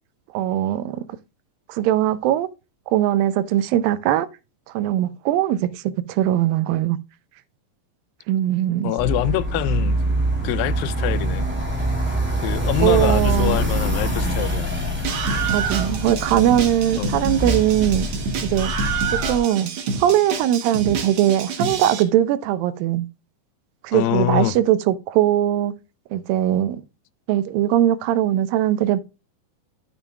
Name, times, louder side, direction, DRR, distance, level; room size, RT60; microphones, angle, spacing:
voice 1, 0.3-1.0 1.7-2.5 2.9-4.3 4.7-7.0 8.3-8.9 12.8-13.6 15.5-18.1 18.5-18.7 19.3-23.1 23.8-25.7 26.1-26.8 27.3-29.0, right 12 dB, 90° right, 2.4 m, -20 dB
voice 2, 8.8-10.0 10.4-11.5 12.4-14.7 17.0-17.2 23.9-24.5, left 14 dB, 90° left, 2.3 m, -24 dB
sound 1, 9.0-19.4, right 1 dB, 5° right, 2.7 m, -24 dB
Screaming, 15.0-22.0, right 5 dB, 65° right, 1.3 m, -28 dB
12.0 x 7.0 x 2.3 m
omnidirectional pair, 4.0 m